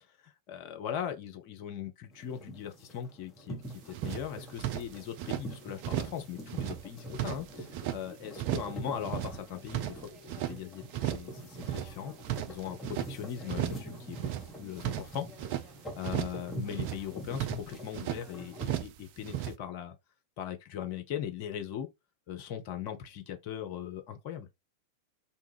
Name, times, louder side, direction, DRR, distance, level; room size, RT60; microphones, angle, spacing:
voice 1, 0.2-10.1 10.5-12.1 12.5-12.8 13.1-14.3 14.5-15.3 15.9-19.9 20.4-21.9 22.3-24.5, left 9 dB, 45° left, 0.6 m, -39 dB
sound 1, 2.1-18.8, right 1 dB, 15° left, 1.0 m, -45 dB
sound 2, 3.6-3.7 3.9-5.4 5.8-6.2 6.5-8.0 8.4-8.8 9.0-10.6 10.9-11.3 11.6-13.1 13.5-13.9 14.1-15.7 16.0-16.4 16.7-18.2 18.6-19.0 19.2-19.5, right 13 dB, 45° right, 0.3 m, -35 dB
2.4 x 2.3 x 3.2 m
figure-of-eight pair, 90°, 0 cm